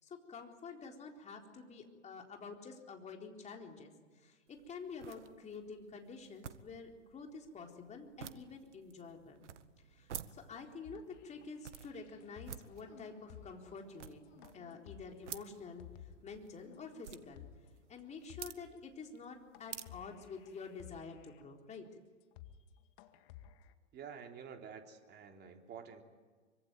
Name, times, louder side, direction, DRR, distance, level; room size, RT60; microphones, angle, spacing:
voice 1, 0.0-9.5 9.9-14.3 14.5-17.5 17.9-21.9, left 4 dB, 20° left, 2 dB, 4.1 m, -49 dB
sound 1, 4.5-21.0, right 9 dB, 70° right, 1.7 m, -53 dB
sound 2, 10.8-16.3 16.7-16.8 17.2-17.7 18.0-18.1 18.3-18.8 19.2-19.3 19.5-21.4 21.8-21.9 22.2-22.7 23.0-23.7, left 10 dB, 45° left, 2.2 m, -56 dB
sound 3, 12.8-13.4 14.2-14.9 15.3-15.7 16.5-17.7, left 4 dB, 80° left, 6.2 m, -62 dB
voice 2, 23.9-26.0, right 7 dB, 25° right, 3 dB, 3.7 m, -49 dB
25.5 x 24.5 x 9.4 m, 1.4 s
hypercardioid pair, 110°, 37 cm